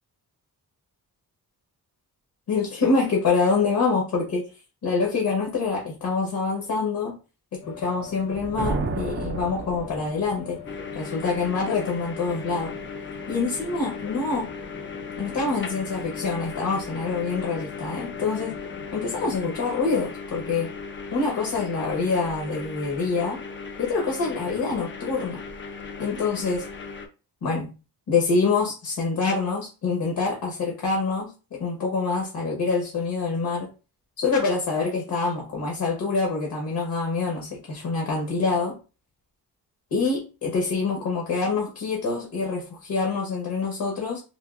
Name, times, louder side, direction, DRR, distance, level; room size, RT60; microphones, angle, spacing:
voice 1, 2.5-4.4 4.8-7.2 7.7-10.6 10.9-12.7 13.3-14.5 15.2-18.5 18.9-20.7 21.1-23.4 23.8-25.4 26.0-26.7 27.4-27.7 28.1-33.7 34.2-38.8 39.9-44.2, left 4 dB, 70° left, -1 dB, 1.1 m, -26 dB
sound 1, 7.6-19.4, left 7 dB, 50° left, 0.9 m, -42 dB
Thunder, 8.1-10.5, right 4 dB, 35° right, 0.4 m, -31 dB
sound 2, 10.7-27.1, left 4 dB, 30° left, 0.5 m, -37 dB
3.5 x 2.7 x 2.5 m, 0.32 s
wide cardioid pair, 135°, 38 cm